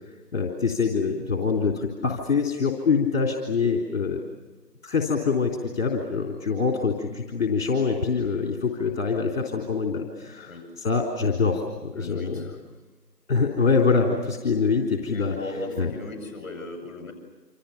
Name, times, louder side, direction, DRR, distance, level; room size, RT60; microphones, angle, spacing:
voice 1, 0.3-4.2 4.8-12.5 13.3-15.3 15.8-15.9, left 5 dB, 35° left, 2 dB, 3.5 m, -25 dB
voice 2, 11.9-12.6 15.1-17.1, left 2 dB, 15° left, 2 dB, 7.2 m, -36 dB
27.5 x 27.0 x 7.0 m, 1.3 s
figure-of-eight pair, 160°, 50 cm